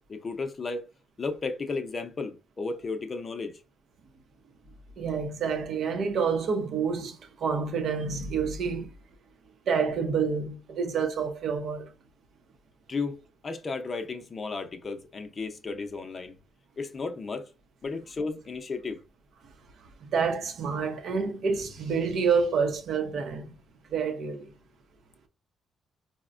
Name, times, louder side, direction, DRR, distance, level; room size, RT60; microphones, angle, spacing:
voice 1, 0.1-0.9 1.2-3.6 12.9-16.3 16.8-17.5 17.8-19.0, left 4 dB, 40° left, 0.5 m, -34 dB
voice 2, 5.0-8.9 9.7-11.9 20.0-23.5 23.9-24.5, right 5 dB, 65° right, 0.6 m, -28 dB
4.0 x 2.1 x 2.4 m
cardioid pair, 90°, 0 cm